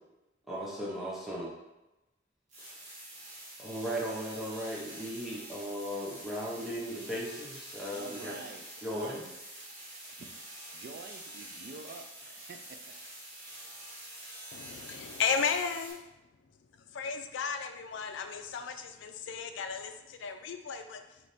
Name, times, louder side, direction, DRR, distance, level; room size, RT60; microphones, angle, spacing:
voice 1, 0.5-1.5 2.7-2.8 3.6-8.4 8.8-9.2, equal, ahead, -6 dB, 0.7 m, -37 dB
sound 1, 2.5-15.9, right 1 dB, 40° right, 1.3 m, -47 dB
voice 2, 7.9-9.4 10.1-10.3 10.7-12.9, right 4 dB, 60° right, 7 dB, 0.4 m, -48 dB
voice 3, 14.5-16.0 16.9-21.3, left 6 dB, 80° left, 7 dB, 0.4 m, -34 dB
3.4 x 3.1 x 4.0 m, 0.99 s
head